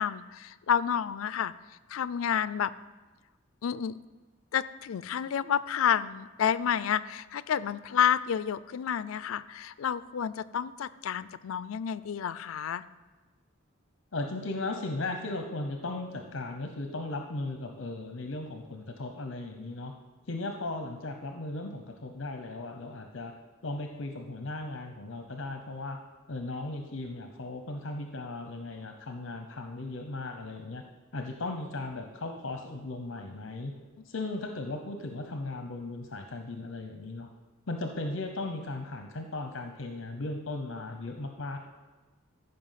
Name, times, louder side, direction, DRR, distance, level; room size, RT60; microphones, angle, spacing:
voice 1, 0.0-1.5 1.9-2.7 3.6-3.9 4.5-12.8, left 8 dB, 85° left, 17 dB, 0.4 m, -30 dB
voice 2, 14.1-19.9 20.3-23.3 23.6-26.0 26.3-30.8 31.1-33.7 34.0-37.3 37.7-41.6, left 2 dB, 65° left, 4 dB, 0.8 m, -37 dB
14.5 x 5.5 x 5.7 m, 1.2 s
head